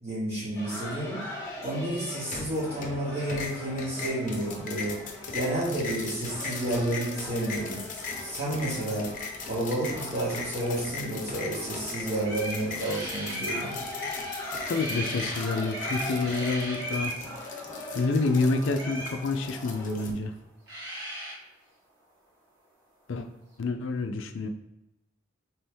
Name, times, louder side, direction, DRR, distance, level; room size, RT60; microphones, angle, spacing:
voice 1, 0.0-1.2 1.6-5.0 5.3-7.8 8.2-9.1 9.4-13.7, right 1 dB, 30° right, -5 dB, 1.6 m, -31 dB
sound 1, 0.5-20.1, left 1 dB, 15° left, 1.3 m, -41 dB
sound 2, 2.3-3.0 3.3-20.1, left 4 dB, 40° left, 0.8 m, -39 dB
sound 3, 12.2-13.7 14.7-15.4 15.7-17.2 18.7-19.2 20.4-20.5 20.7-21.3, equal, 60° right, 1.5 m, -36 dB
voice 2, 14.7-17.1 17.9-20.3 23.1-23.3 23.6-24.5, left 3 dB, 65° left, 6 dB, 0.4 m, -28 dB
4.4 x 3.4 x 3.4 m, 0.94 s
head